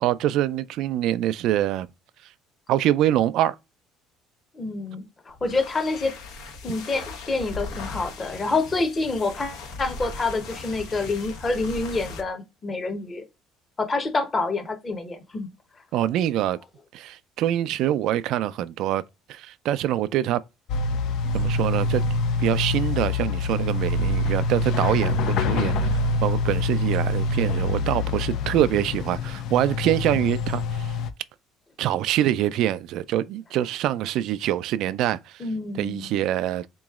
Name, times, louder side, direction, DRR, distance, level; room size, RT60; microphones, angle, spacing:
voice 1, 0.0-1.9 2.7-3.6 15.9-16.6 16.9-19.0 19.3-20.4 21.3-22.0 22.4-25.9 26.2-30.9 31.8-35.4 35.7-36.7, right 12 dB, 60° right, 0.4 m, -25 dB
voice 2, 4.5-6.1 6.6-13.2 13.8-15.5 25.2-25.3 35.4-36.1, left 3 dB, 20° left, 0.9 m, -27 dB
sound 1, 5.3-12.3, left 3 dB, 80° left, 1.3 m, -38 dB
sound 2, 20.7-31.1, left 3 dB, 60° left, 0.5 m, -25 dB
3.8 x 3.0 x 3.6 m
cardioid pair, 145°, 0 cm